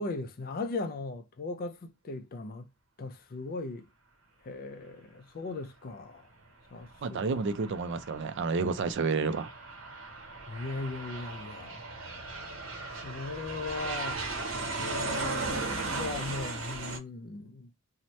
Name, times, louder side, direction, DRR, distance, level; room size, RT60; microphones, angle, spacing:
voice 1, 0.0-2.7 3.0-3.9 4.4-6.2 6.7-7.4 10.5-11.9 13.0-14.2 14.8-17.9, left 3 dB, 45° left, 0.4 m, -38 dB
Aircraft, 6.8-17.0, right 3 dB, 75° right, 0.8 m, -37 dB
voice 2, 7.0-9.5, right 4 dB, 60° right, 0.4 m, -30 dB
2.7 x 2.1 x 3.0 m
head